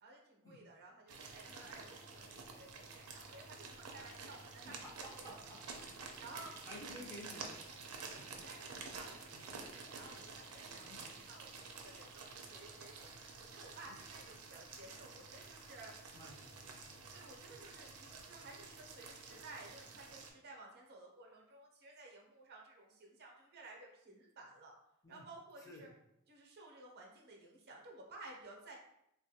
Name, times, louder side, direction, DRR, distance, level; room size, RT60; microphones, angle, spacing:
voice 1, 0.0-4.7 5.2-5.5 6.2-6.5 8.3-13.1 13.4-15.9 17.1-24.7 25.1-25.9 26.3-28.8, right 2 dB, 50° right, 0 dB, 0.6 m, -55 dB
sound 1, 1.1-20.3, right 4 dB, 90° right, 0.5 m, -50 dB
voice 2, 4.6-6.1 6.6-7.9 9.3-9.5 10.8-11.1 13.8-13.9 16.1-17.0 17.4-17.6 25.0-25.3 25.6-25.8, equal, 15° left, -4 dB, 0.6 m, -54 dB
3.5 x 2.2 x 2.7 m, 0.79 s
head